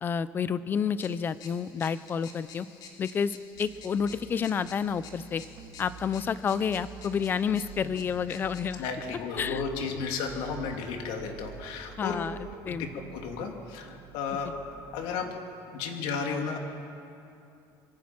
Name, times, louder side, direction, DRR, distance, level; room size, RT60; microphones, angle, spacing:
voice 1, 0.0-2.7 3.0-5.4 5.8-8.8 9.4-9.6 12.0-12.4 12.7-12.9, left 7 dB, 20° left, 16 dB, 0.5 m, -29 dB
sound 1, 1.0-8.7, left 5 dB, 50° left, 3.2 m, -50 dB
sound 2, 3.5-15.4, right 6 dB, 45° right, 1.6 m, -48 dB
voice 2, 8.8-12.2 12.6-14.5 14.9-15.3 15.7-16.6, left 5 dB, 75° left, 3 dB, 3.0 m, -33 dB
25.0 x 22.5 x 6.1 m, 2.7 s
cardioid pair, 175°, 9 cm